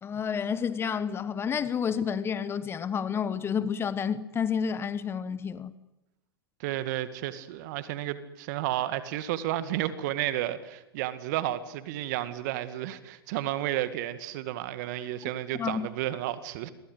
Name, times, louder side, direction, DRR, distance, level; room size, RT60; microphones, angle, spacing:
voice 1, 0.0-5.7 15.6-15.9, left 7 dB, 20° left, 1.1 m, -30 dB
voice 2, 6.6-16.7, right 13 dB, 45° right, 2.0 m, -32 dB
28.5 x 22.5 x 8.1 m
figure-of-eight pair, 105°, 13 cm